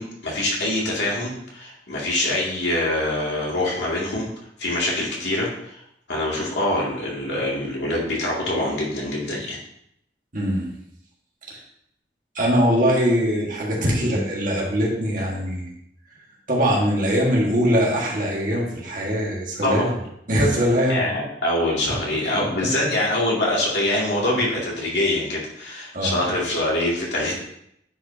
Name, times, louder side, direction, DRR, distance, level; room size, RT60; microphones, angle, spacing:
voice 1, 0.0-4.3 4.6-5.8 6.1-9.6 19.6-19.9 20.9-27.3, left 1 dB, 80° left, -4 dB, 2.4 m, -24 dB
voice 2, 10.3-10.7 11.5-11.6 12.4-15.7 16.5-19.9 20.3-21.1 25.9-26.2, equal, 50° right, -3 dB, 1.7 m, -22 dB
9.5 x 5.4 x 2.8 m, 0.75 s
head